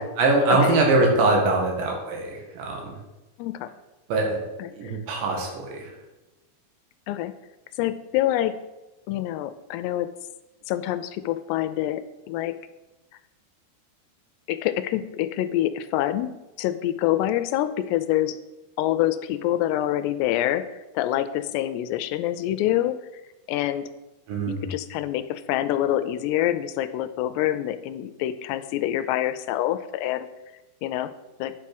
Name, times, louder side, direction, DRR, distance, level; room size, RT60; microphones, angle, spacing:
voice 1, 0.2-3.0 4.1-4.4 4.7-5.9 24.3-24.7, right 2 dB, 85° right, 0 dB, 4.2 m, -22 dB
voice 2, 3.4-3.7 4.6-4.9 7.1-7.4 7.8-8.6 9.1-10.1 10.7-12.6 14.5-18.4 18.8-23.0 23.5-23.9 24.5-30.3 30.8-31.1 31.4-31.6, left 13 dB, 85° left, 12 dB, 2.7 m, -26 dB
9.8 x 6.0 x 6.0 m, 1.0 s
omnidirectional pair, 4.9 m